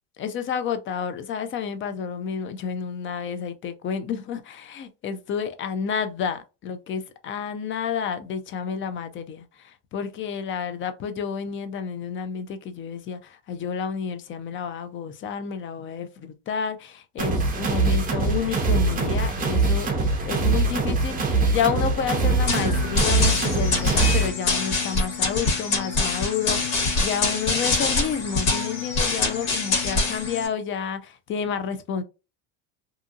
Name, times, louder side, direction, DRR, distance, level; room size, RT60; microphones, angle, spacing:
voice 1, 0.2-32.0, left 7 dB, 30° left, 0.4 m, -30 dB
sound 1, 17.2-24.3, right 3 dB, 20° right, 0.7 m, -23 dB
sound 2, 22.5-30.5, left 3 dB, 60° left, 1.6 m, -25 dB
2.7 x 2.5 x 2.4 m
supercardioid pair, 115°, 40 cm